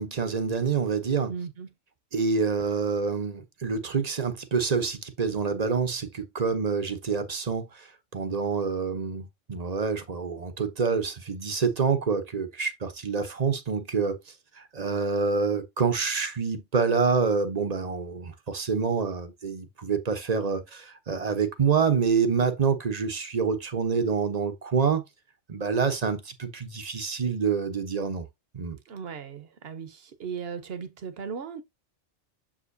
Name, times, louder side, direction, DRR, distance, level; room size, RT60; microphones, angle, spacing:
voice 1, 0.0-1.3 2.1-7.9 8.1-14.2 14.6-25.0 25.5-28.3 28.5-28.8, right 5 dB, 35° right, 0.9 m, -27 dB
voice 2, 1.3-1.7 28.9-31.6, right 6 dB, 55° right, 1.1 m, -37 dB
7.3 x 5.0 x 2.7 m
omnidirectional pair, 1.3 m